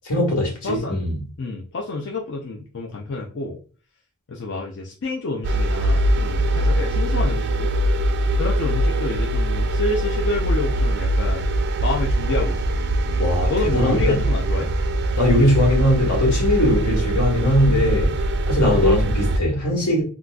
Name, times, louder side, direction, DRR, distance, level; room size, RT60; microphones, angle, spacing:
voice 1, 0.0-1.2 13.2-14.2 15.1-20.0, left 1 dB, 90° left, 1.5 m, -20 dB
voice 2, 0.6-1.0 1.4-3.6 4.3-7.7 8.4-11.5 11.8-12.6 13.5-14.7 18.6-18.8, left 2 dB, 55° left, 0.5 m, -28 dB
sound 1, 5.4-19.4, right 1 dB, 50° right, 0.4 m, -22 dB
3.8 x 2.3 x 2.3 m
head